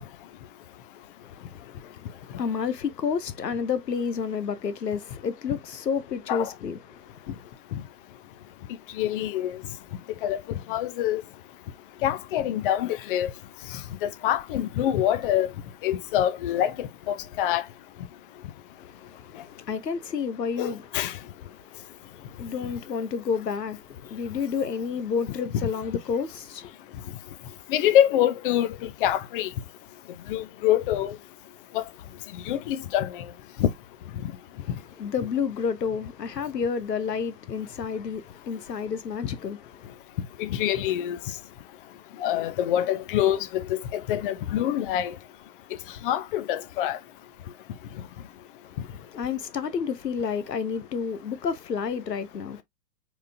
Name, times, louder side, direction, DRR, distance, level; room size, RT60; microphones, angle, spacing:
voice 1, 1.2-7.4 18.8-20.9 21.6-26.7 34.6-34.7 35.0-39.9 48.7-48.8 49.1-52.6, left 6 dB, 85° left, 0.8 m, -30 dB
voice 2, 8.9-9.6 10.2-11.2 12.0-13.3 13.7-15.5 15.8-17.6 20.6-21.2 27.7-29.5 30.3-31.2 31.7-31.8 32.5-33.3 33.6-33.7 34.2-34.3 40.4-41.2 42.2-45.1 46.0-47.0, left 11 dB, 35° left, 0.7 m, -25 dB
4.6 x 3.9 x 2.7 m
figure-of-eight pair, 105°, 48 cm